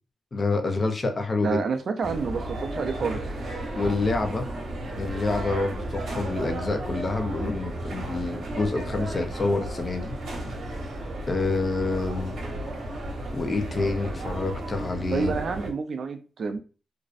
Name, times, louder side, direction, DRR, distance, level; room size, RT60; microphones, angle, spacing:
voice 1, 0.3-1.6 3.7-4.4 5.0-10.2 11.3-12.4 13.3-15.3, left 3 dB, 35° left, 6 dB, 0.5 m, -27 dB
voice 2, 1.4-3.2 15.1-16.6, right 4 dB, 55° right, 8 dB, 0.4 m, -28 dB
sound 1, 2.0-15.7, right 1 dB, 75° right, 0.8 m, -34 dB
2.5 x 2.1 x 2.4 m, 0.34 s
cardioid pair, 95°, 0 cm